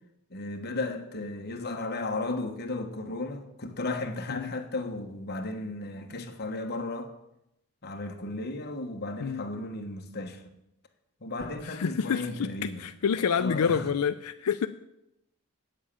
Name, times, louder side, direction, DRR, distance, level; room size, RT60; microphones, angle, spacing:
voice 1, 0.3-7.1 7.8-10.4 11.2-12.8 13.4-13.9, left 2 dB, 50° left, 1.3 m, -34 dB
voice 2, 11.6-14.7, left 6 dB, 85° left, 0.5 m, -28 dB
8.7 x 7.4 x 8.6 m
head